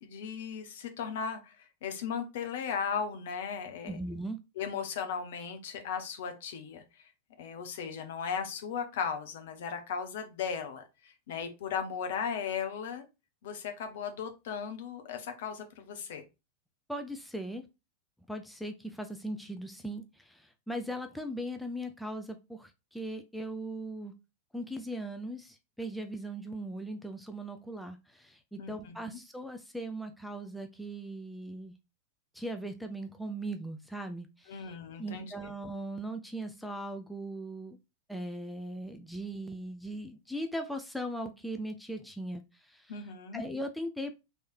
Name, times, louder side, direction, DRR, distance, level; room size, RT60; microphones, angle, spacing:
voice 1, 0.0-4.0 4.6-6.8 7.4-13.0 13.4-16.2 28.6-29.2 34.5-35.5 42.9-43.4, left 6 dB, 55° left, 6 dB, 0.9 m, -37 dB
voice 2, 3.9-4.4 16.9-17.7 18.3-24.1 24.5-31.7 32.3-37.8 38.1-44.2, right 1 dB, ahead, 5 dB, 0.4 m, -39 dB
3.3 x 3.1 x 4.3 m, 0.26 s
figure-of-eight pair, 90°, 0 cm